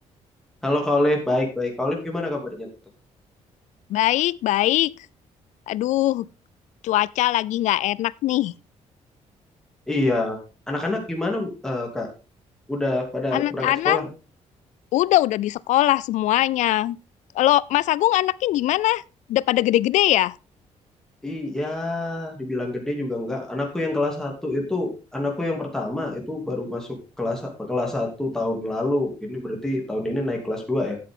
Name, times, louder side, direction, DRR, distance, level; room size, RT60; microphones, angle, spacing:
voice 1, 0.6-2.7 9.9-10.4 10.7-12.1 12.7-14.1 21.2-26.9 27.2-31.0, left 2 dB, 5° left, 2.7 m, -26 dB
voice 2, 3.9-4.9 5.7-6.3 6.8-8.5 13.3-14.0 14.9-17.0 17.4-19.0 19.3-20.4, left 15 dB, 75° left, 0.4 m, -21 dB
13.0 x 7.8 x 3.7 m
cardioid pair, 170°, 12 cm